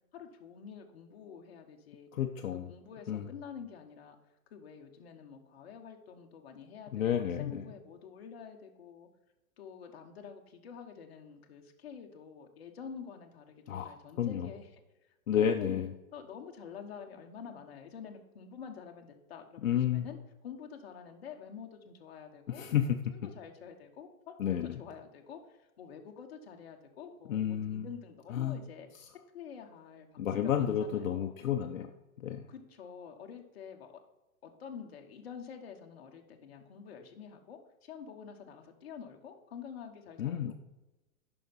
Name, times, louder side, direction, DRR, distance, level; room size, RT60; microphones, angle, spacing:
voice 1, 0.1-2.1 2.5-4.2 4.5-9.1 9.6-14.7 15.3-20.2 20.4-22.9 23.1-24.4 24.6-28.9 29.3-30.1 30.4-31.5 32.5-33.9 34.4-40.5, left 7 dB, 45° left, 3 dB, 1.2 m, -48 dB
voice 2, 2.1-2.7 3.1-3.3 6.9-7.6 13.7-13.9 14.2-14.5 15.3-15.9 19.6-20.1 22.5-23.3 24.4-24.8 27.3-27.9 28.3-28.6 30.2-31.9 32.2-32.5 40.2-40.5, left 9 dB, 65° left, 5 dB, 0.8 m, -31 dB
9.0 x 5.9 x 4.1 m, 1.0 s
hypercardioid pair, 175°, 43 cm